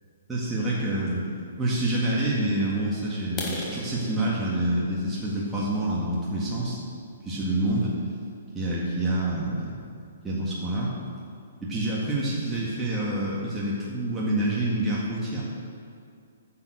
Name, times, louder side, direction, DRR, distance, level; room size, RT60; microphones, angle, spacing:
voice 1, 0.3-6.8 7.3-7.9 8.5-9.7 10.2-10.9 11.7-15.4, right 1 dB, 10° right, -7 dB, 1.8 m, -27 dB
sound 1, 3.3-7.0 7.6-7.8 8.2-8.3 8.7-8.9 9.2-9.3 9.8-9.9 10.1-10.6, left 3 dB, 25° left, 1.6 m, -39 dB
9.5 x 6.9 x 6.4 m, 2.3 s
hypercardioid pair, 135°, 0 cm